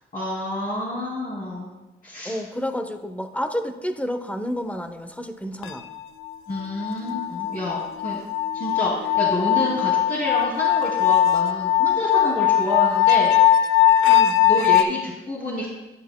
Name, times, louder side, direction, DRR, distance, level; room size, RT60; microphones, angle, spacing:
voice 1, 0.1-1.7 2.0-2.4 6.5-8.2 8.5-13.7 14.4-15.7, left 1 dB, 45° left, -7 dB, 2.5 m, -28 dB
voice 2, 2.2-5.8 14.1-14.4, equal, 5° left, 8 dB, 0.8 m, -30 dB
sound 1, 5.6-6.0 6.3-14.8, left 11 dB, 90° left, 0.5 m, -20 dB
11.0 x 8.1 x 2.2 m, 1.1 s
cardioid pair, 60°, 21 cm